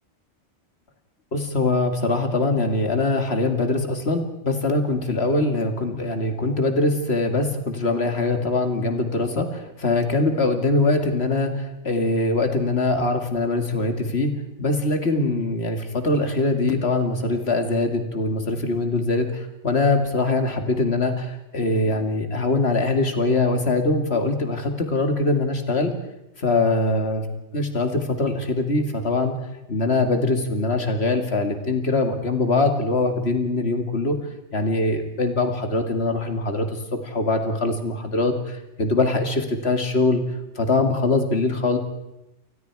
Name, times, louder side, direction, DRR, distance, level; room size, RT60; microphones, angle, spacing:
voice 1, 1.3-14.3 14.6-25.9 26.4-27.3 27.5-29.4 29.7-34.2 34.5-40.2 40.6-41.8, left 2 dB, 60° left, 6 dB, 2.4 m, -22 dB
28.5 x 19.5 x 4.7 m, 0.90 s
omnidirectional pair, 1.2 m